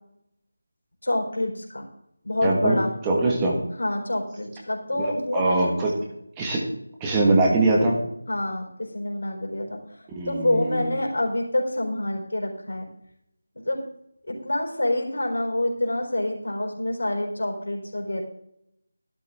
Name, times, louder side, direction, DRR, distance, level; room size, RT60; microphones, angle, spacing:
voice 1, 1.0-1.9 2.2-2.9 3.8-5.7 8.3-9.8 10.3-12.9 13.7-13.8 14.3-18.2, left 1 dB, 70° left, 0 dB, 4.0 m, -27 dB
voice 2, 2.4-2.8 3.0-3.5 5.0-5.1 5.3-5.9 6.4-6.6 7.0-8.0 10.1-10.9, right 2 dB, 15° right, -1 dB, 1.7 m, -22 dB
12.5 x 11.5 x 3.7 m, 0.77 s
figure-of-eight pair, 165°, 0 cm